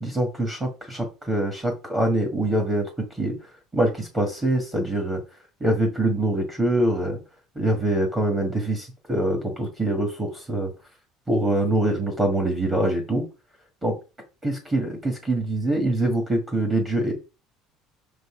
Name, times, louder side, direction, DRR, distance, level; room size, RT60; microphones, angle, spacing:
voice 1, 0.0-3.3 3.7-5.2 5.6-7.2 7.5-10.7 11.3-13.3 13.8-13.9 14.4-17.1, right 1 dB, 15° right, 2 dB, 1.6 m, -24 dB
6.2 x 4.0 x 4.9 m, 0.30 s
cardioid pair, 160°, 0 cm